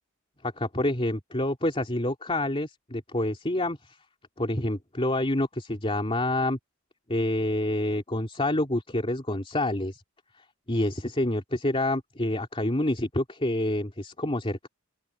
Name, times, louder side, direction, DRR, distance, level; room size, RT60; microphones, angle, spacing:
voice 1, 0.4-4.0 4.4-6.6 7.1-10.0 10.7-14.7, left 1 dB, 25° left, 3.0 m, -27 dB
open air
head